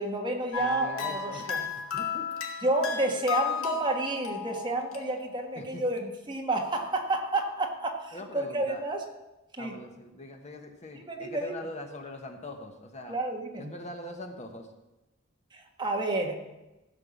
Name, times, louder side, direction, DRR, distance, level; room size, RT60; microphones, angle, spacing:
voice 1, 0.0-1.6 2.6-9.0 9.6-9.8 10.9-11.5 13.1-13.7 15.5-16.4, right 2 dB, 20° right, 1 dB, 1.5 m, -30 dB
sound 1, 0.5-5.7, left 6 dB, 80° left, 1.9 m, -34 dB
voice 2, 0.6-2.3 5.6-5.8 8.1-8.8 9.6-13.2 13.5-14.7, left 1 dB, 35° left, 4 dB, 1.2 m, -42 dB
15.0 x 5.9 x 7.1 m, 1.0 s
head